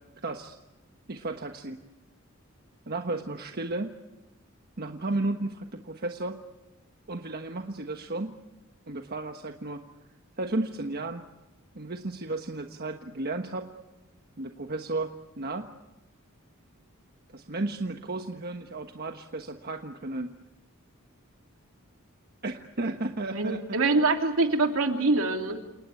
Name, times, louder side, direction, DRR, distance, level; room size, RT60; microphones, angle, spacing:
voice 1, 0.2-0.6 1.1-1.8 2.9-3.9 4.8-6.4 7.1-8.3 8.9-9.8 10.4-11.2 11.7-13.7 14.4-15.7 17.3-20.3 22.4-23.8, right 2 dB, 50° right, 5 dB, 1.3 m, -33 dB
voice 2, 23.3-25.6, right 3 dB, 70° right, 4 dB, 3.0 m, -24 dB
29.5 x 18.5 x 8.4 m, 1.1 s
head